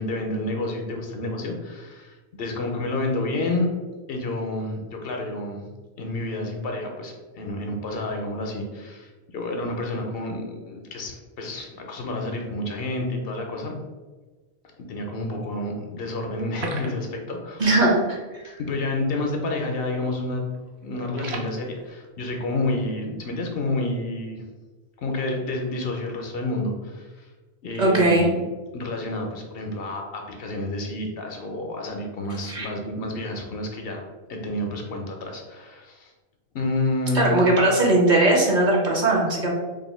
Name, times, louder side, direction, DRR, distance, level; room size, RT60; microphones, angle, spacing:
voice 1, 0.0-3.7 4.1-5.6 6.0-13.7 14.9-17.6 18.4-20.4 20.8-24.4 25.0-27.3 27.6-28.4 28.7-34.0 34.3-36.1 36.5-37.4, left 2 dB, 65° left, 2 dB, 0.8 m, -29 dB
sound 1, 16.4-17.6 17.9-18.0 18.3-18.4 19.1-19.3 19.6-19.9 20.3-21.5, right 3 dB, 75° right, 0.9 m, -36 dB
voice 2, 17.6-18.2 27.8-28.3 32.5-32.7 37.1-39.5, right 2 dB, 50° right, -1 dB, 0.7 m, -19 dB
2.7 x 2.5 x 4.1 m, 1.3 s
omnidirectional pair, 1.1 m